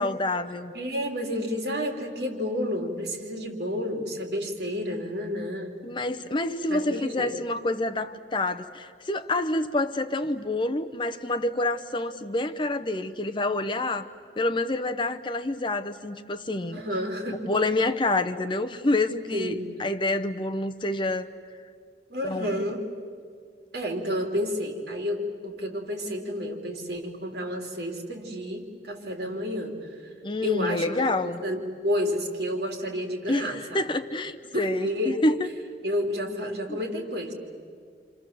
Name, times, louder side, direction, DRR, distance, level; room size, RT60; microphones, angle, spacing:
voice 1, 0.0-0.7 5.8-14.1 14.4-16.8 17.5-21.3 22.2-22.7 30.2-31.4 33.3-35.5 36.7-36.8, left 2 dB, 30° left, 8 dB, 0.8 m, -27 dB
voice 2, 0.7-5.8 6.7-7.3 16.7-17.5 19.3-19.7 22.1-22.8 23.7-30.1 30.4-30.9 31.2-33.8 34.5-35.2 35.8-37.3, equal, 65° right, 2 dB, 3.6 m, -30 dB
28.5 x 27.0 x 7.7 m, 2.1 s
head